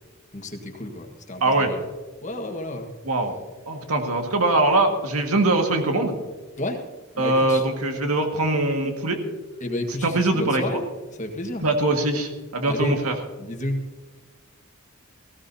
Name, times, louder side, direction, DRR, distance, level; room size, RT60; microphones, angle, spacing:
voice 1, 0.3-1.8 2.2-2.9 6.6-6.8 7.1-7.6 9.6-10.8 11.2-11.6 12.6-12.9 13.4-13.9, left 1 dB, 35° left, 3 dB, 1.5 m, -31 dB
voice 2, 3.1-3.4 3.7-6.1 7.2-9.2 10.0-10.8 11.6-13.1, right 2 dB, 85° right, 3 dB, 1.8 m, -22 dB
18.5 x 16.0 x 2.8 m, 1.3 s
head